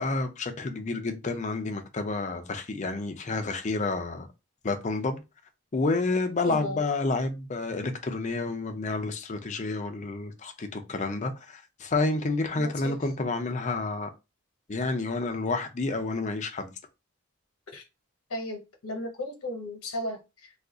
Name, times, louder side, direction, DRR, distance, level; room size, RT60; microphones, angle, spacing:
voice 1, 0.0-4.3 4.6-5.2 5.7-14.1 14.7-16.7, left 3 dB, 35° left, 0.5 m, -29 dB
voice 2, 6.4-6.8 12.6-13.0 17.7-17.8 18.3-20.5, left 1 dB, 90° left, 1.0 m, -35 dB
2.4 x 2.3 x 3.7 m
head